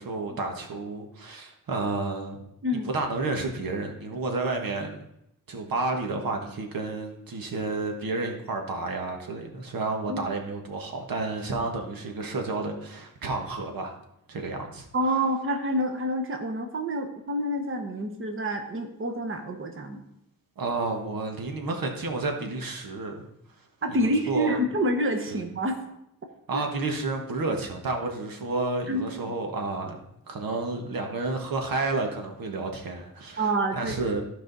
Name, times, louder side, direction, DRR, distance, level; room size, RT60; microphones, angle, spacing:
voice 1, 0.0-2.4 2.7-5.0 5.5-14.0 14.3-14.9 20.6-23.2 23.9-24.6 25.3-25.4 26.5-34.2, right 3 dB, 80° right, 3 dB, 1.5 m, -31 dB
voice 2, 14.9-20.1 23.8-25.8 26.5-26.6 28.9-29.0 33.4-33.9, right 1 dB, 35° right, 4 dB, 1.2 m, -27 dB
14.5 x 4.9 x 4.0 m, 0.80 s
wide cardioid pair, 120°, 34 cm